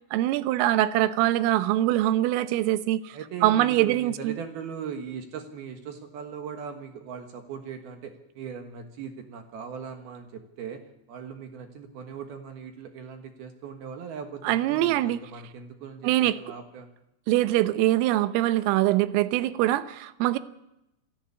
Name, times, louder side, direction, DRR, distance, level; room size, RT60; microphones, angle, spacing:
voice 1, 0.1-4.4 14.4-15.2 16.0-16.4 17.3-20.4, right 14 dB, 90° right, 13 dB, 3.5 m, -23 dB
voice 2, 3.1-10.8 11.1-16.9, right 7 dB, 65° right, 5 dB, 2.9 m, -39 dB
27.5 x 11.5 x 8.5 m, 0.87 s
omnidirectional pair, 5.7 m